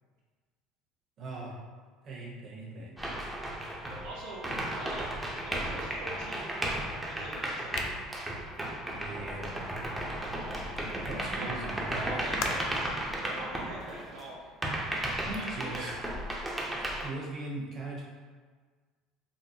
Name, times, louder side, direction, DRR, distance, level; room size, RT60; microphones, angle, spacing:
voice 1, 1.2-1.5 2.0-3.0 8.9-9.7 11.0-12.3 15.3-15.9 17.0-18.0, right 2 dB, 45° right, -4 dB, 0.9 m, -40 dB
sound 1, 3.0-14.2 14.6-17.1, right 1 dB, 10° right, 0.5 m, -35 dB
voice 2, 4.0-4.4 4.8-5.1 5.4-6.5 7.0-7.8 11.3-11.5 11.9-12.9 13.2-14.6 15.3-15.9, right 2 dB, 85° right, -5 dB, 0.5 m, -43 dB
sound 2, 7.7-11.0 12.4-12.8, left 4 dB, 60° left, 0.3 m, -41 dB
3.7 x 2.0 x 2.8 m, 1.5 s
supercardioid pair, 105°, 0 cm